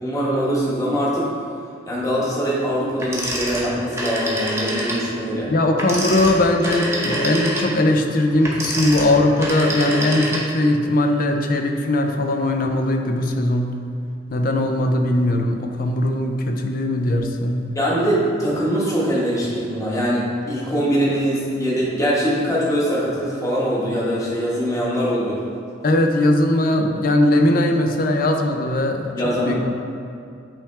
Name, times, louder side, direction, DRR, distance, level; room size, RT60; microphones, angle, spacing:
voice 1, 0.0-1.3 1.9-5.5 17.7-25.4 29.1-29.7, equal, 20° left, -6 dB, 1.2 m, -22 dB
Telephone, 3.0-5.1 5.7-10.8, right 1 dB, 15° right, 0.8 m, -26 dB
voice 2, 5.5-13.8 14.3-17.7 25.8-29.7, left 1 dB, 50° left, 4 dB, 0.5 m, -19 dB
8.5 x 3.5 x 3.3 m, 2.5 s
head